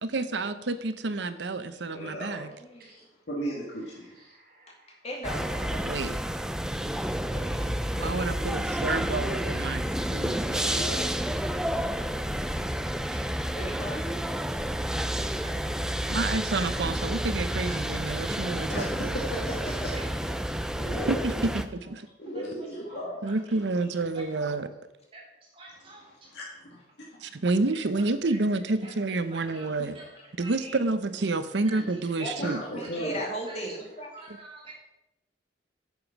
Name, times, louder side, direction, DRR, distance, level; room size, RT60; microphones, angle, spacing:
voice 1, 0.0-2.5 5.8-6.2 8.0-9.8 10.1-10.8 16.1-19.2 21.1-22.0 23.2-24.7 27.2-30.0 30.4-32.6, right 3 dB, 80° right, 12 dB, 0.8 m, -29 dB
voice 2, 1.7-2.5 2.9-4.3 10.4-11.9 18.7-19.9 20.8-21.5 22.2-23.1 25.7-25.8 26.2-27.4 32.4-33.2, equal, 80° left, -5 dB, 2.1 m, -37 dB
voice 3, 2.5-2.8 5.0-5.8 7.3-7.7 8.0-8.4 10.2-10.5 13.5-14.2 19.9-20.0 32.2-34.1, equal, 35° left, 0 dB, 2.4 m, -38 dB
voice 4, 4.1-5.0, right 1 dB, 55° right, -4 dB, 3.8 m, -55 dB
sound 1, 5.2-21.6, equal, 5° right, 0.4 m, -30 dB
voice 5, 15.4-15.8 17.7-18.7 19.2-19.3 19.7-20.4 20.9-21.0 21.8-21.9 22.3-23.5 24.1-24.6 25.1-25.2 25.5-26.1 27.9-30.1 30.4-30.8 31.6-31.8 32.2-32.5 32.8-33.8 34.1-34.7, right 2 dB, 30° right, -3 dB, 3.6 m, -48 dB
9.3 x 7.1 x 5.9 m, 0.93 s
head